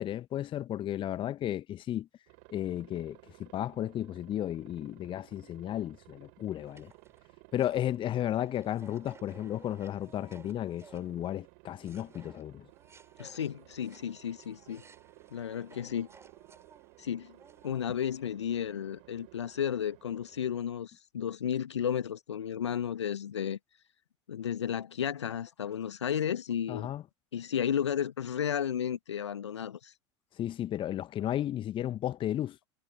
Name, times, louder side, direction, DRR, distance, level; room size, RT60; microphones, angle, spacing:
voice 1, 0.0-2.1 2.5-6.9 7.5-12.6 26.7-27.0 30.4-32.6, left 12 dB, 35° left, 1.2 m, -34 dB
Aircraft, 2.3-20.5, right 40 dB or more, 55° right, 3.3 m, -58 dB
sound 1, 6.6-11.5 11.8-18.2, right 4 dB, 20° right, 4.1 m, -58 dB
voice 2, 13.2-14.8 15.3-16.1 17.0-17.3 17.6-23.6 24.3-26.9 27.3-29.9, left 9 dB, 70° left, 1.4 m, -33 dB
figure-of-eight pair, 75°, 15 cm